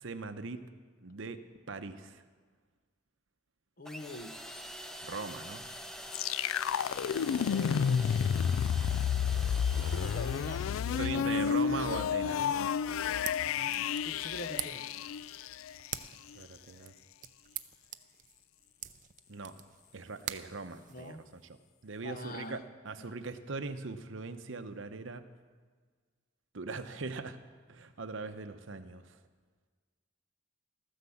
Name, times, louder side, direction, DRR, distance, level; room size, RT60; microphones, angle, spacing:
voice 1, 0.0-0.7 1.0-2.2 5.0-5.6 11.0-12.5 16.3-16.9 19.3-19.6 19.9-21.6 21.8-25.2 26.5-27.4 27.7-29.2, right 4 dB, 70° right, 10 dB, 0.8 m, -41 dB
voice 2, 3.8-4.4 7.3-8.5 9.8-11.6 13.3-13.5 14.0-14.9 20.9-21.2 22.0-22.6 23.0-23.1, left 2 dB, 45° left, 9 dB, 0.9 m, -44 dB
sound 1, 3.9-11.5, equal, 5° left, 0.7 m, -45 dB
sound 2, 6.1-16.0, left 7 dB, 85° left, 0.3 m, -31 dB
sound 3, 12.9-21.5, right 11 dB, 40° right, 0.5 m, -46 dB
14.0 x 9.9 x 7.1 m, 1.5 s
head